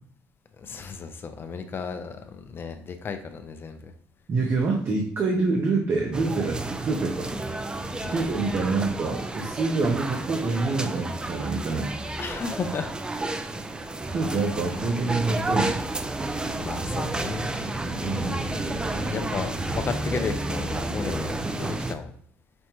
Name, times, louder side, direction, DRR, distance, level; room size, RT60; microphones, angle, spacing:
voice 1, 0.6-3.9 8.0-8.2 12.2-12.9 16.6-17.5 19.1-22.1, left 5 dB, 40° left, 8 dB, 0.5 m, -34 dB
voice 2, 4.3-7.3 8.1-11.9 14.1-15.8 18.0-18.4, right 3 dB, 45° right, 1 dB, 0.7 m, -26 dB
sound 1, 6.1-21.9, right 2 dB, 15° right, 0.4 m, -31 dB
sound 2, 16.2-21.6, equal, 30° right, 1.1 m, -37 dB
5.2 x 2.1 x 3.0 m, 0.65 s
supercardioid pair, 85°, 6 cm